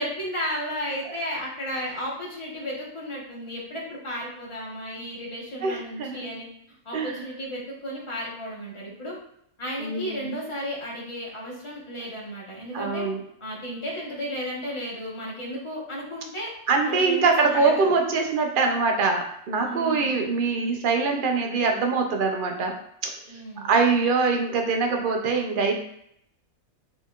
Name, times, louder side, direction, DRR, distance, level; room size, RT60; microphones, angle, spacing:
voice 1, 0.0-6.5 6.8-9.2 9.6-13.0 13.4-16.5 16.8-17.9 19.6-20.3 23.3-23.8, equal, 25° left, -4 dB, 1.0 m, -33 dB
voice 2, 5.6-6.3 6.9-7.2 9.8-10.4 12.7-13.2 16.7-22.7 23.6-25.8, right 4 dB, 55° right, 3 dB, 0.6 m, -23 dB
4.0 x 3.9 x 2.4 m, 0.71 s
omnidirectional pair, 1.5 m